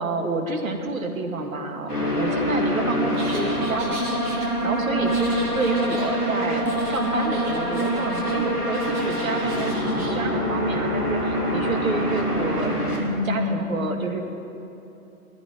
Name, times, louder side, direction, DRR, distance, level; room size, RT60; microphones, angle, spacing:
voice 1, 0.0-12.8 13.2-14.2, right 3 dB, 60° right, 4 dB, 1.7 m, -29 dB
sound 1, 1.9-13.6, equal, 85° left, 2.9 m, -25 dB
sound 2, 3.1-4.4 5.1-6.1 6.7-8.4 8.7-10.1, right 2 dB, 5° right, 0.5 m, -40 dB
18.5 x 13.5 x 3.7 m, 3.0 s
figure-of-eight pair, 120°, 45 cm